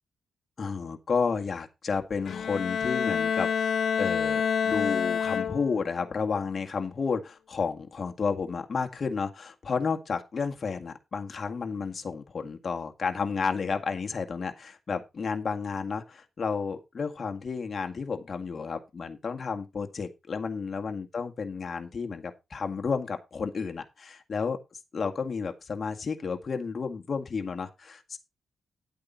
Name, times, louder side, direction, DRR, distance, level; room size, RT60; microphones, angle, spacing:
voice 1, 0.6-3.5 4.0-24.6 24.9-28.2, left 5 dB, 45° left, 5 dB, 1.9 m, -31 dB
Bowed string instrument, 2.2-5.9, left 7 dB, 65° left, 1.0 m, -28 dB
11.0 x 8.3 x 4.1 m, 0.24 s
cardioid pair, 115°, 0 cm